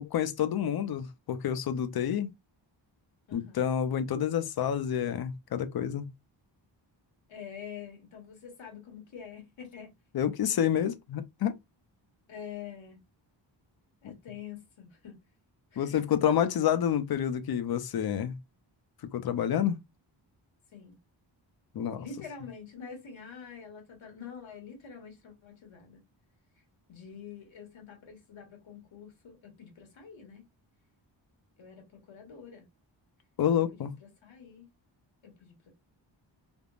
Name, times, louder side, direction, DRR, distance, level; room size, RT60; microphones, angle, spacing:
voice 1, 0.0-2.3 3.3-6.1 10.1-11.6 15.8-18.4 19.1-19.8 21.7-22.1 33.4-33.9, left 9 dB, 55° left, 0.5 m, -28 dB
voice 2, 3.3-3.7 7.3-9.9 12.3-13.0 14.0-15.2 15.7-16.0 20.7-21.0 22.0-26.0 26.9-30.4 31.6-32.6 33.7-34.7 35.2-35.5, left 7 dB, 80° left, 1.4 m, -46 dB
3.4 x 2.1 x 2.4 m
wide cardioid pair, 120°, 46 cm